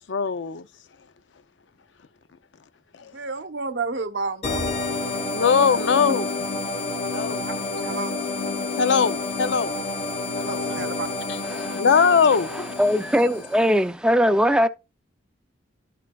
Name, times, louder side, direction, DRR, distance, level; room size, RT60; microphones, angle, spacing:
voice 1, 0.1-0.7 3.0-3.1 5.3-6.3 7.1-7.4 8.8-9.8 10.4-10.9 11.8-12.7, left 6 dB, 75° left, 0.5 m, -21 dB
voice 2, 3.0-5.4 5.8-5.9 7.4-7.6 7.8-8.7 9.0-9.2 9.6-9.8 10.4-11.1, right 4 dB, 70° right, 0.8 m, -33 dB
sound 1, 4.4-13.8, left 3 dB, 35° left, 1.2 m, -29 dB
voice 3, 11.5-11.8 12.5-14.7, equal, 5° right, 0.4 m, -21 dB
11.5 x 5.8 x 2.3 m
head